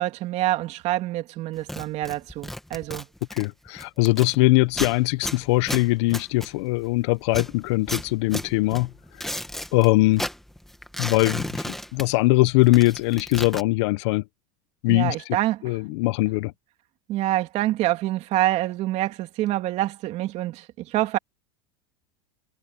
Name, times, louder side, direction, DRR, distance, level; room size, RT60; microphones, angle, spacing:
voice 1, 0.0-3.1 14.9-15.7 17.1-21.2, right 15 dB, 45° right, 2.6 m, -26 dB
sound 1, 1.6-4.4 4.7-6.9 7.3-9.9 10.1-12.4 12.6-13.6, left 1 dB, ahead, 1.7 m, -34 dB
voice 2, 3.3-8.9 9.7-10.3 11.0-14.2 14.8-15.1 15.6-16.5, left 22 dB, 70° left, 0.7 m, -21 dB
supercardioid pair, 130°, 15 cm